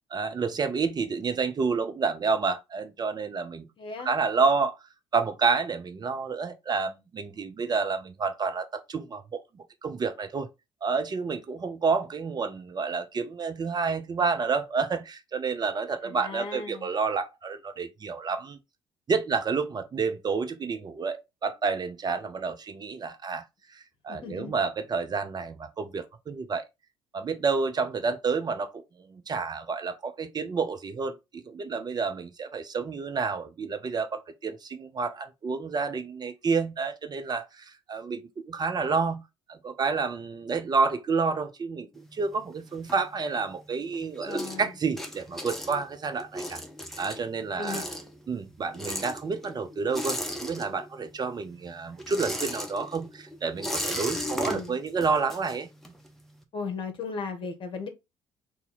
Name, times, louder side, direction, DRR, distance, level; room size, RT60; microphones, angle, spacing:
voice 1, 0.1-3.7 4.0-4.8 5.1-10.5 10.8-18.6 19.1-23.4 23.7-26.6 27.1-39.2 39.5-46.6 47.0-47.8 48.3-55.7, right 5 dB, 30° right, 0.7 m, -29 dB
voice 2, 3.8-4.1 16.0-16.9 24.1-24.5 44.2-44.7 47.6-47.9 54.1-54.8 56.5-57.9, left 4 dB, 40° left, 1.1 m, -36 dB
sound 1, 41.9-43.6 43.9-51.1 51.4-56.1, equal, ahead, 0.9 m, -36 dB
2.8 x 2.8 x 3.9 m
figure-of-eight pair, 50°, 13 cm